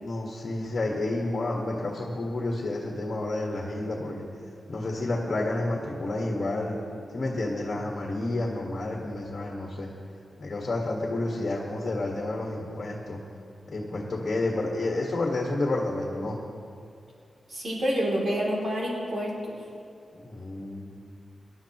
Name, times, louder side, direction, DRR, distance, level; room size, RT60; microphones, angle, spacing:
voice 1, 0.0-4.2 4.7-6.8 7.1-9.9 10.4-13.2 13.7-16.4 20.1-20.9, left 2 dB, 40° left, -1 dB, 1.6 m, -30 dB
voice 2, 17.5-19.6, equal, 50° right, -3 dB, 2.9 m, -28 dB
24.5 x 11.5 x 3.0 m, 2.3 s
wide cardioid pair, 170°, 0 cm